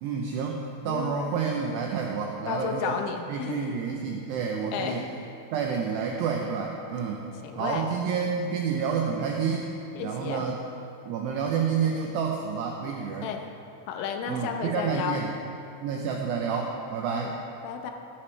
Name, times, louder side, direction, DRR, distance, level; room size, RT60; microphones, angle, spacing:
voice 1, 0.0-2.9 3.3-5.1 5.5-7.2 7.5-9.7 10.0-10.6 11.1-13.3 14.3-15.3 15.8-17.4, right 6 dB, 90° right, 1 dB, 2.4 m, -29 dB
voice 2, 2.5-3.6 4.7-4.9 7.4-7.9 9.9-10.5 13.2-13.5 13.9-15.2 17.1-17.3 17.6-17.9, left 7 dB, 80° left, 4 dB, 3.3 m, -32 dB
15.0 x 12.5 x 3.2 m, 2.7 s
omnidirectional pair, 5.7 m